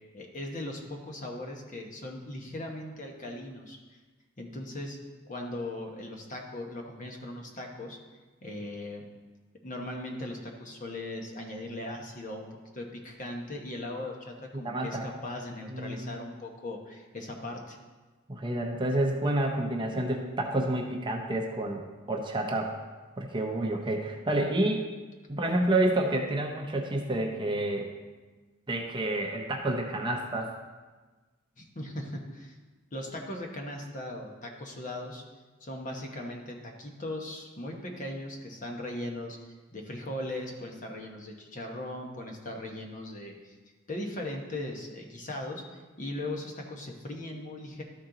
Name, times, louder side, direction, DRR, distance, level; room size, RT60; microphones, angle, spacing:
voice 1, 0.1-4.0 4.4-5.0 5.3-8.0 8.4-9.0 9.6-12.5 12.7-17.8 31.6-32.6 32.9-35.2 35.6-43.5 43.9-47.8, left 1 dB, 40° left, 1 dB, 1.0 m, -39 dB
voice 2, 14.5-15.1 15.7-16.2 18.3-22.8 23.2-24.9 25.3-27.9 28.7-30.6, right 1 dB, 25° right, 2 dB, 0.7 m, -29 dB
13.0 x 4.3 x 3.8 m, 1.3 s
head